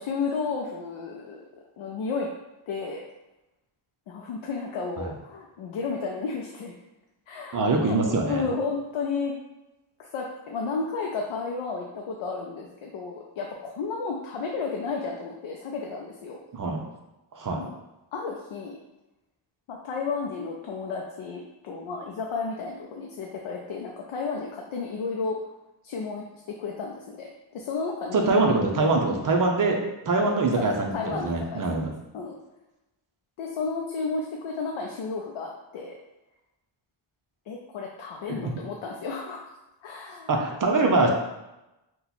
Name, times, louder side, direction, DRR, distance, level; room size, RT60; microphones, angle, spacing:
voice 1, 0.0-1.4 1.8-2.3 2.7-3.0 4.1-6.7 7.3-8.0 8.3-9.3 10.0-16.4 17.6-17.7 18.1-18.8 19.7-25.4 25.8-28.3 30.6-31.9 32.1-32.4 33.4-35.9 37.5-39.4 39.8-40.3, left 4 dB, 80° left, 0 dB, 0.5 m, -32 dB
voice 2, 7.5-8.5 16.5-16.8 17.4-17.6 28.1-29.8 30.1-31.9 38.4-38.5 40.3-41.1, right 3 dB, 40° right, 2 dB, 0.6 m, -23 dB
2.8 x 2.3 x 4.0 m, 0.97 s
wide cardioid pair, 110°, 48 cm